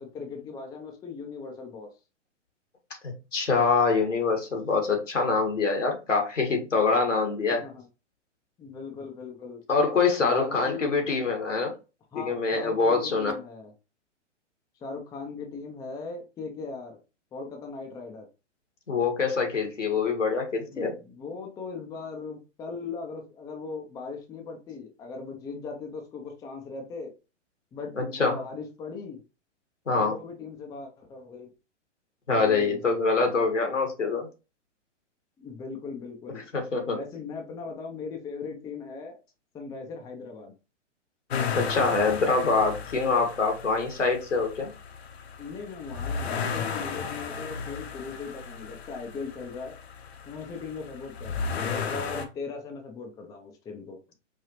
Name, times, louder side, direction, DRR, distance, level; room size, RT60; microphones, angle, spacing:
voice 1, 0.0-1.9 7.5-7.9 8.6-9.6 10.2-10.9 12.1-13.7 14.8-17.0 17.3-18.3 20.7-27.1 27.7-29.2 30.0-31.5 32.3-32.8 35.4-36.5 36.9-39.2 39.5-40.5 45.4-49.8 50.3-54.0, left 4 dB, 10° left, 0.6 m, -39 dB
voice 2, 3.0-7.7 9.7-11.7 12.1-13.3 18.9-20.9 28.0-28.4 29.9-30.1 32.3-34.3 36.5-37.0 41.5-44.7, left 4 dB, 80° left, 1.6 m, -25 dB
sound 1, 41.3-52.2, left 6 dB, 60° left, 0.9 m, -34 dB
5.1 x 2.7 x 2.9 m
figure-of-eight pair, 115°, 36 cm